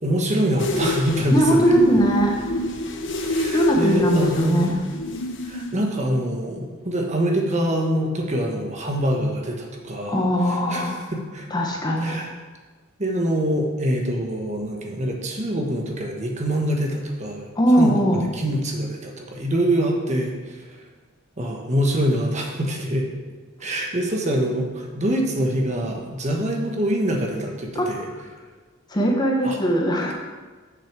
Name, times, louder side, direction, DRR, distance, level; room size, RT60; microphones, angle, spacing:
voice 1, 0.0-1.8 3.2-4.7 5.4-11.5 12.0-12.3 13.0-20.9 21.4-23.1 23.6-28.1 29.4-29.6, equal, 35° right, 1 dB, 1.3 m, -25 dB
Shadow Maker-Bathroom, 0.6-5.8, left 1 dB, 60° left, 0.9 m, -26 dB
voice 2, 1.3-2.4 3.5-4.7 10.1-11.0 11.5-12.3 17.6-18.3 27.7-27.9 28.9-30.1, right 1 dB, 20° left, 0 dB, 1.0 m, -20 dB
6.9 x 6.0 x 7.3 m, 1.4 s
head